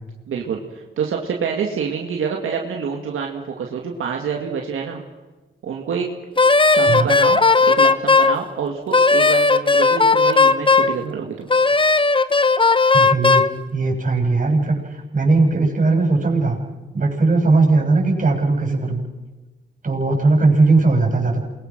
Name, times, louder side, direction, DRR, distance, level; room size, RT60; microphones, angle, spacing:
voice 1, 0.3-5.0 5.6-6.1 6.6-11.5, right 6 dB, 90° right, 1 dB, 2.2 m, -27 dB
Wind instrument woodwind instrument, 6.4-8.4 8.9-11.0 11.5-13.5, left 3 dB, 25° left, 1.0 m, -15 dB
voice 2, 6.8-7.1 12.9-16.6 16.9-19.0 19.8-21.4, right 3 dB, 40° right, 0 dB, 7.1 m, -18 dB
28.0 x 22.0 x 6.2 m, 1.2 s
cardioid pair, 65°, 21 cm